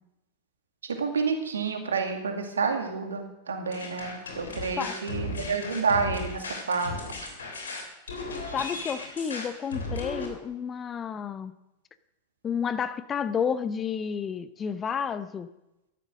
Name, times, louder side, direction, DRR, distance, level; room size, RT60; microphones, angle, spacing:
voice 1, 0.8-7.0 7.2-7.3, right 5 dB, 70° right, 5 dB, 2.2 m, -29 dB
sound 1, 3.7-10.3, left 2 dB, 70° left, 3.1 m, -36 dB
voice 2, 8.5-11.5 12.4-15.5, left 7 dB, 25° left, 14 dB, 0.7 m, -31 dB
14.5 x 11.5 x 6.3 m, 0.93 s
figure-of-eight pair, 90°, 0 cm